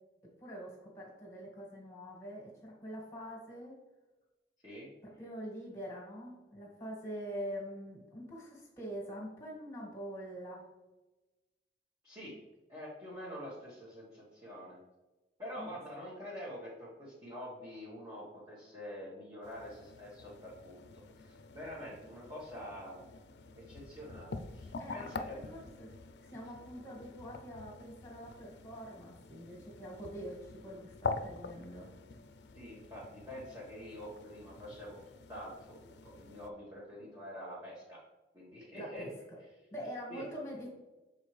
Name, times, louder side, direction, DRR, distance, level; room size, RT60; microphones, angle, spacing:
voice 1, 0.2-3.8 5.0-10.7 15.6-15.7 24.8-25.9 26.2-31.9 38.7-39.1 39.4-40.7, equal, 15° left, -2 dB, 1.8 m, -45 dB
voice 2, 12.0-12.3 12.7-14.8 15.4-23.1 23.5-25.5 32.5-35.0 35.3-38.0 38.3-39.1 40.1-40.2, equal, 20° right, -8 dB, 1.4 m, -46 dB
sound 1, 19.4-36.5, left 3 dB, 70° left, 0.5 m, -46 dB
7.3 x 4.1 x 3.2 m, 1.1 s
head